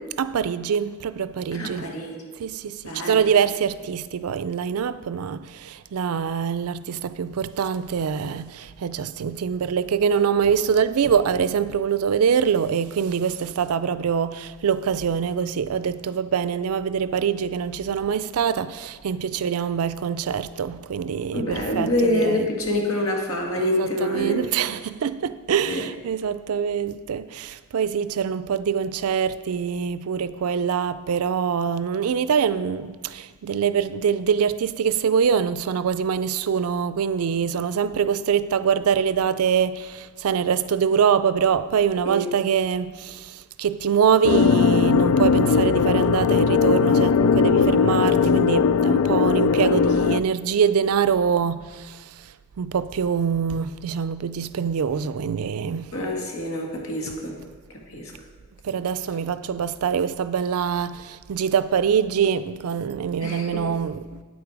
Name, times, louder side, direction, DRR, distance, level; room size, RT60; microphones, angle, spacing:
voice 1, 0.2-1.9 2.4-22.5 23.6-55.9 57.1-57.2 58.6-64.2, right 7 dB, 90° right, 0.4 m, -24 dB
voice 2, 1.5-2.2 2.8-3.3 21.3-24.4 25.7-25.9 42.1-42.3 55.9-57.4 57.7-58.1 63.2-63.6, left 1 dB, 70° left, 1.9 m, -26 dB
sound 1, 44.2-50.2, left 6 dB, 90° left, 0.3 m, -19 dB
8.8 x 8.7 x 4.8 m
head